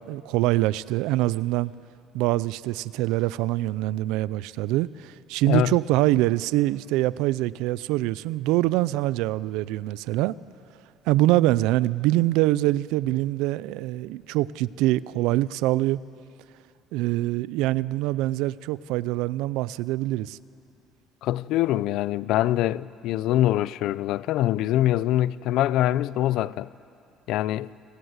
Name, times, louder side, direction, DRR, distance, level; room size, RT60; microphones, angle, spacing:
voice 1, 0.0-1.7 2.1-10.3 11.1-16.0 16.9-20.4, right 17 dB, 85° right, 0.5 m, -24 dB
voice 2, 21.2-26.7 27.3-27.7, left 14 dB, 75° left, 0.5 m, -24 dB
29.0 x 20.5 x 8.1 m
cardioid pair, 100°, 0 cm